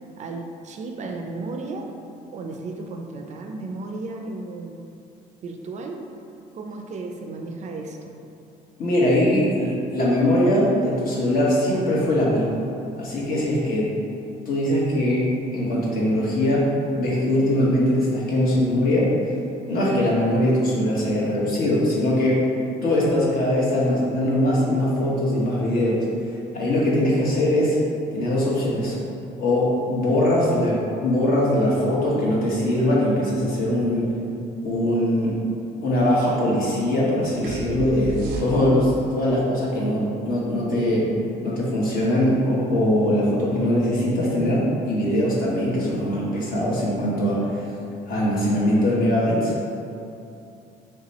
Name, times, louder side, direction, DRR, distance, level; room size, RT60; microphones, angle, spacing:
voice 1, 0.2-1.9 2.3-4.8 5.4-6.0 6.5-8.2, right 3 dB, 45° right, 3 dB, 0.4 m, -34 dB
voice 2, 8.8-12.6 13.0-13.9 14.4-16.7 16.9-19.1 19.7-22.4 22.8-26.0 26.5-27.8 28.1-29.0 29.4-34.1 34.6-35.4 35.8-41.1 41.4-47.7 48.0-49.5, left 1 dB, 60° left, -5 dB, 1.1 m, -21 dB
sound 1, 37.4-39.0, right 4 dB, 85° right, 0.6 m, -32 dB
3.3 x 2.9 x 4.0 m, 2.7 s
cardioid pair, 110°, 17 cm